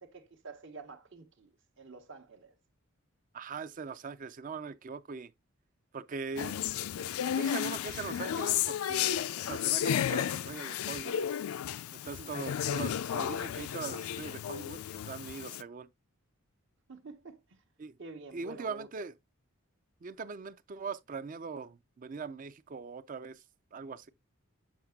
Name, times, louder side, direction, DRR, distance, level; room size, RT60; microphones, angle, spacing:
voice 1, 0.0-2.5 12.2-12.4 16.9-17.6 18.0-18.9, right 3 dB, 60° right, 1.0 m, -49 dB
voice 2, 3.3-5.3 5.9-6.6 7.3-9.2 9.4-11.3 12.0-14.8 15.1-15.9 17.8-17.9 18.3-19.1 20.0-23.4 23.7-24.1, right 5 dB, 40° right, 0.4 m, -41 dB
sound 1, 6.4-15.6, left 9 dB, 85° left, 0.4 m, -33 dB
7.3 x 5.7 x 2.3 m
head